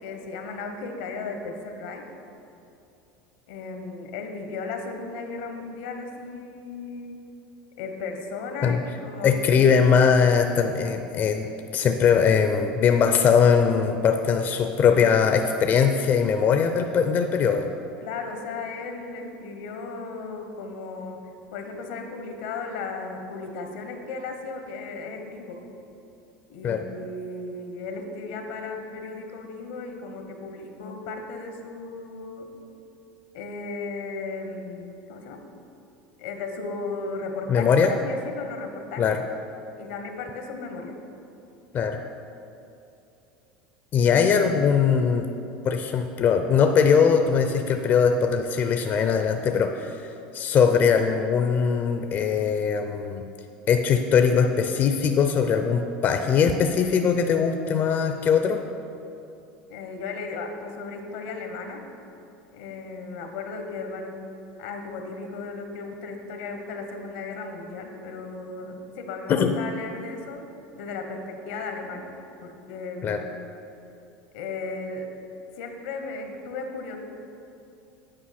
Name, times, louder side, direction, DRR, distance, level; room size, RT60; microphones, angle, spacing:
voice 1, 0.0-2.0 3.5-7.2 7.8-9.7 18.0-21.2 21.5-25.6 26.5-32.5 33.3-35.4 36.2-39.2 39.8-41.0 44.0-44.1 59.7-61.8 62.5-64.2 64.6-70.4 70.7-72.1 72.4-73.5 74.3-75.1 75.6-77.0, left 3 dB, 85° left, 5 dB, 1.1 m, -35 dB
voice 2, 9.2-17.7 26.6-26.9 37.5-37.9 39.0-39.2 41.7-42.0 43.9-45.2 45.6-53.2 53.7-58.6 69.3-69.5 73.0-73.2, left 6 dB, 40° left, 6 dB, 0.5 m, -21 dB
8.9 x 4.7 x 5.8 m, 2.7 s
supercardioid pair, 105°, 5 cm